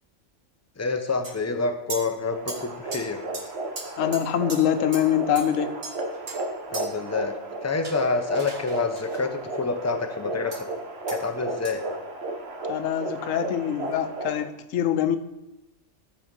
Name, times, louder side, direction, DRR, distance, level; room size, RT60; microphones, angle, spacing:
voice 1, 0.8-3.2 6.7-7.3 7.6-10.7 11.1-11.8, left 4 dB, 20° left, 6 dB, 0.4 m, -27 dB
sound 1, 1.2-1.4 1.9-2.0 2.5-2.6 2.9-3.0 3.3-3.4 3.8-3.9 4.1-4.2 4.5-4.6 4.9-5.0 5.4-5.5 5.8-6.4 6.7-6.8 7.8-9.2 10.5-10.6 11.1-11.2 11.7-11.8, right 3 dB, 75° right, 2.1 m, -37 dB
sound 2, 2.3-14.5, right 2 dB, 55° right, 1.2 m, -34 dB
voice 2, 4.0-5.7 12.7-15.2, left 10 dB, 90° left, 10 dB, 1.0 m, -24 dB
11.5 x 4.3 x 5.3 m, 0.97 s
omnidirectional pair, 1.3 m